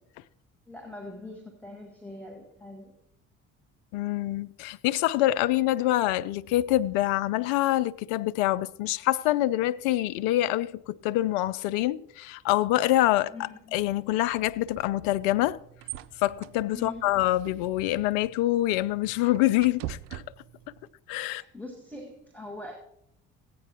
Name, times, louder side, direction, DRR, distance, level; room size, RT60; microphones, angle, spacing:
voice 1, 0.7-2.9 13.3-13.8 16.7-17.1 21.3-22.7, left 2 dB, 5° left, 2.0 m, -42 dB
voice 2, 3.9-15.6 16.2-20.2 21.1-21.4, left 15 dB, 70° left, 0.5 m, -26 dB
sound 1, 15.2-20.9, right 13 dB, 75° right, 0.5 m, -44 dB
15.0 x 9.1 x 2.9 m
hypercardioid pair, 50°, 37 cm